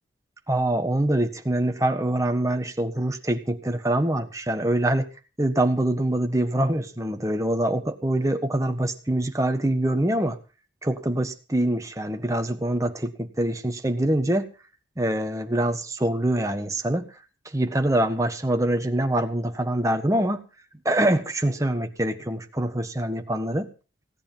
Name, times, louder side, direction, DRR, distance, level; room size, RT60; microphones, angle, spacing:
voice 1, 0.5-5.1 5.4-10.4 10.8-14.5 15.0-17.1 17.5-20.4 20.8-23.7, right 1 dB, 15° right, 6 dB, 1.4 m, -24 dB
17.0 x 10.0 x 5.6 m, 0.35 s
head